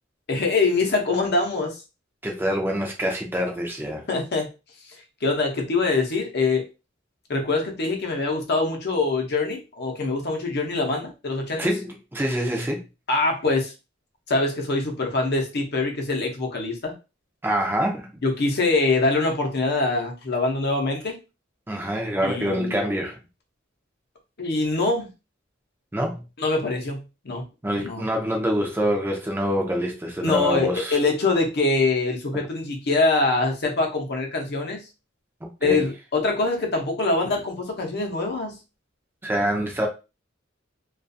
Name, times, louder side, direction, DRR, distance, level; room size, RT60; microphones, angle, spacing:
voice 1, 0.3-1.8 4.1-4.5 5.2-6.6 7.3-11.7 13.1-13.7 14.3-16.9 18.2-21.1 22.2-22.8 24.4-25.1 26.4-27.0 27.2-27.4 27.8-28.0 30.2-34.8 35.6-38.6, left 3 dB, 55° left, 0.7 m, -24 dB
voice 2, 2.2-4.0 11.6-12.8 17.4-18.1 21.7-23.2 25.9-26.2 27.6-31.0 35.4-35.8 39.2-39.9, equal, 10° right, 0.4 m, -26 dB
2.4 x 2.4 x 2.6 m
head